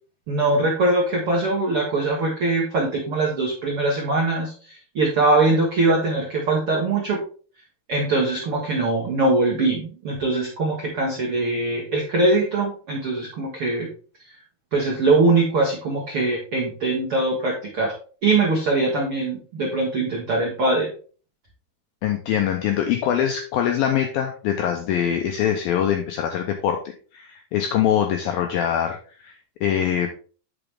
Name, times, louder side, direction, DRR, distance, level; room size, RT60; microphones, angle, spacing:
voice 1, 0.3-7.2 7.9-13.9 14.7-17.9 18.2-20.9, right 2 dB, 80° right, -2 dB, 1.2 m, -22 dB
voice 2, 22.0-29.4 29.6-30.1, left 9 dB, 85° left, 4 dB, 2.1 m, -23 dB
9.0 x 6.0 x 3.4 m, 0.40 s
omnidirectional pair, 5.1 m